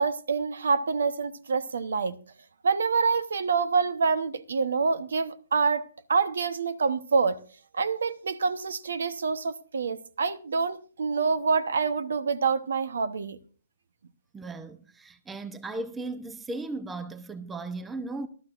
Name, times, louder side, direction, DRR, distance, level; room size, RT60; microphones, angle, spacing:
voice 1, 0.0-2.2 2.6-5.8 6.1-7.4 7.7-13.4, right 5 dB, 85° right, 1.0 m, -26 dB
voice 2, 14.3-18.3, right 2 dB, 10° right, 0.6 m, -36 dB
18.5 x 12.0 x 2.5 m
hypercardioid pair, 160°, 0 cm